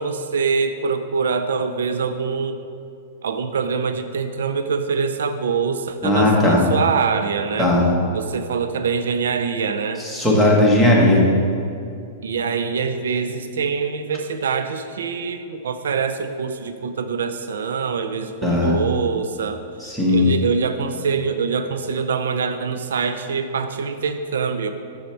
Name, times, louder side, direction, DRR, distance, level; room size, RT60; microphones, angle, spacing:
voice 1, 0.0-2.6 3.2-7.7 8.1-10.0 12.2-19.6 20.1-24.7, right 5 dB, 85° right, 9 dB, 0.4 m, -24 dB
voice 2, 6.0-6.6 7.6-7.9 10.0-11.2 18.4-18.8 19.8-20.3, left 1 dB, ahead, -4 dB, 1.4 m, -16 dB
6.9 x 6.4 x 4.5 m, 2.4 s
hypercardioid pair, 140°, 0 cm